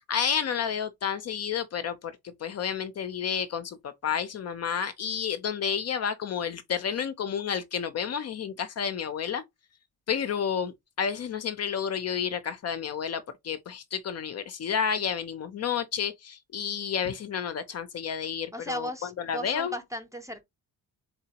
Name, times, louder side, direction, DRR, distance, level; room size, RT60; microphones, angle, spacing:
voice 1, 0.0-9.4 10.1-19.7, left 7 dB, 45° left, 0.5 m, -31 dB
voice 2, 18.5-20.4, equal, 10° right, 0.6 m, -36 dB
4.0 x 3.8 x 2.8 m
cardioid pair, 175°, 37 cm